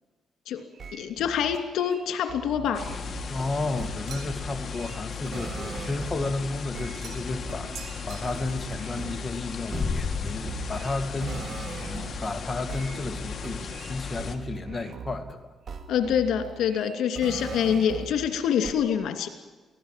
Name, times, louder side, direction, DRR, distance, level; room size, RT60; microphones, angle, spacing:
sound 1, 0.7-6.4 6.7-12.4 12.7-15.4 15.7-18.4 18.6-18.7, right 5 dB, 55° right, 2.4 m, -40 dB
voice 1, 0.9-2.8 15.9-19.3, left 8 dB, 75° left, 7 dB, 2.8 m, -26 dB
sound 2, 2.7-14.4, left 5 dB, 40° left, 2.5 m, -35 dB
voice 2, 3.3-15.5, left 3 dB, 25° left, 5 dB, 2.2 m, -33 dB
sound 3, 4.1-4.6 7.0-7.4 7.7-8.7, right 8 dB, 75° right, 2.3 m, -45 dB
24.0 x 16.5 x 7.6 m, 1.2 s
cardioid pair, 90°, 0 cm